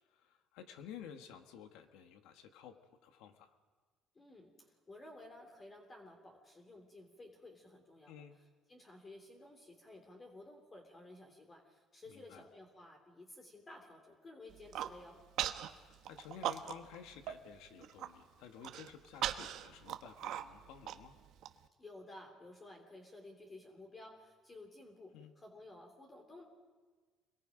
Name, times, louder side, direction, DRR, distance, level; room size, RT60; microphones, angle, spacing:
voice 1, 0.1-3.6 8.1-8.4 12.1-12.4 15.6-21.2 25.1-25.3, left 8 dB, 90° left, 7 dB, 1.6 m, -53 dB
voice 2, 4.1-8.1 8.7-15.2 21.8-26.4, left 2 dB, 25° left, 1 dB, 3.1 m, -54 dB
Human voice, 14.5-14.9 15.4-15.7 16.0-17.0 17.3-17.4 17.7-18.1 18.6-21.5, right 11 dB, 70° right, 1.0 m, -39 dB
28.5 x 22.0 x 5.2 m, 1.4 s
cardioid pair, 115°, 0 cm